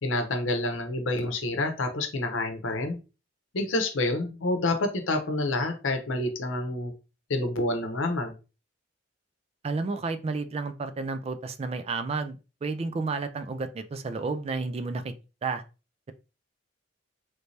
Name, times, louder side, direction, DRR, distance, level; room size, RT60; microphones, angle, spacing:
voice 1, 0.0-3.0 3.5-6.9 7.3-8.3, left 2 dB, 80° left, 6 dB, 0.8 m, -28 dB
voice 2, 9.6-15.1 15.4-15.6, right 4 dB, 30° right, 10 dB, 0.3 m, -31 dB
3.2 x 2.6 x 3.2 m, 0.31 s
head